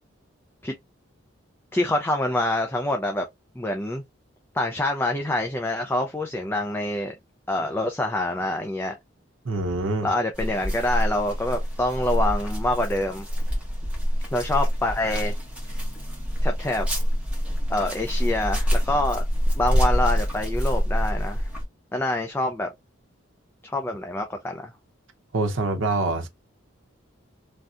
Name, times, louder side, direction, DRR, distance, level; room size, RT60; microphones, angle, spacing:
voice 1, 1.7-3.2 3.6-4.0 4.5-7.1 7.5-9.0 10.0-13.2 14.3-15.3 16.4-16.9 17.7-19.2 19.6-21.4 21.9-22.7 23.6-24.7, left 1 dB, 10° left, 0.3 m, -26 dB
voice 2, 9.4-10.1 25.3-26.3, right 2 dB, 65° right, 0.7 m, -25 dB
sound 1, 10.3-21.6, equal, 5° right, 1.1 m, -26 dB
3.3 x 2.7 x 2.4 m
head